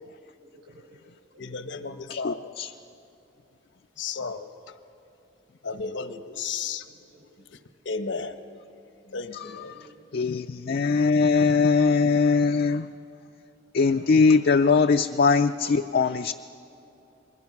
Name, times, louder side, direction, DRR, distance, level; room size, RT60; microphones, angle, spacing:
voice 1, 0.6-1.1 1.7-1.8 6.6-7.4 9.6-10.0 10.3-10.8, right 1 dB, 65° right, 1 dB, 6.0 m, -56 dB
voice 2, 1.4-2.5 4.0-4.5 5.6-6.8 7.8-8.4 9.1-9.7, left 5 dB, 80° left, 10 dB, 1.1 m, -33 dB
voice 3, 2.1-2.7 9.3-9.9 10.1-12.9 13.7-16.3, left 4 dB, 55° left, 7 dB, 0.4 m, -21 dB
27.5 x 21.5 x 6.0 m, 2.7 s
head